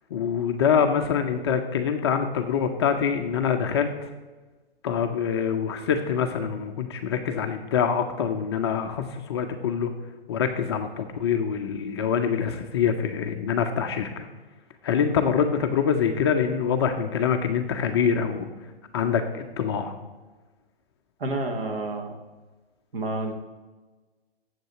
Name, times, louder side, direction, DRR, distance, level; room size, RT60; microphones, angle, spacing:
voice 1, 0.1-4.1 4.8-9.9 10.3-14.3 14.8-18.5 18.9-19.9, left 7 dB, 25° left, 5 dB, 0.5 m, -25 dB
voice 2, 21.2-22.1 22.9-23.3, right 2 dB, 65° right, 4 dB, 1.7 m, -29 dB
7.3 x 5.3 x 7.4 m, 1.2 s
hypercardioid pair, 145°, 31 cm